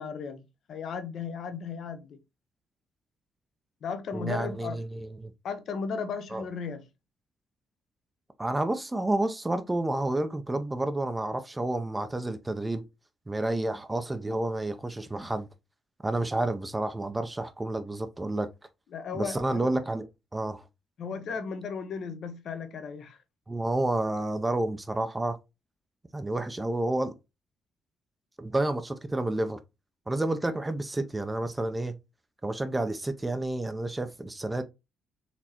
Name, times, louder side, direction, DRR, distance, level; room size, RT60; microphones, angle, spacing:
voice 1, 0.0-2.2 3.8-4.8 5.4-6.8 18.9-19.7 21.0-23.2, left 5 dB, 65° left, 0.9 m, -35 dB
voice 2, 4.1-5.3 6.3-6.4 8.4-12.8 13.3-15.5 16.0-18.5 19.1-20.1 20.3-20.6 23.5-25.4 26.1-27.1 28.4-29.6 30.1-31.9 32.4-34.6, right 2 dB, 15° right, 0.6 m, -30 dB
4.2 x 3.1 x 2.9 m
cardioid pair, 90°, 0 cm